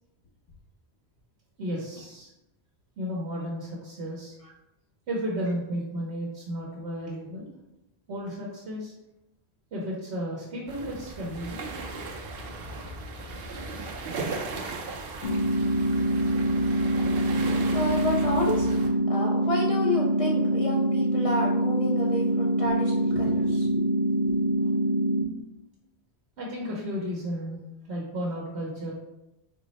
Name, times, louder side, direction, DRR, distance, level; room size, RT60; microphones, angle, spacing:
voice 1, 1.6-2.3 3.0-4.3 5.1-7.5 8.1-8.9 9.7-11.7 26.4-27.6 27.9-28.9, equal, 85° right, -3 dB, 1.0 m, -33 dB
sound 1, 10.7-18.9, right 3 dB, 65° right, 0.7 m, -37 dB
sound 2, 15.2-25.2, right 1 dB, 75° left, 1.0 m, -25 dB
voice 2, 17.7-18.8 19.1-23.8 24.2-24.3, left 1 dB, 50° left, -3 dB, 0.4 m, -30 dB
4.0 x 2.0 x 4.0 m, 0.92 s
omnidirectional pair, 1.1 m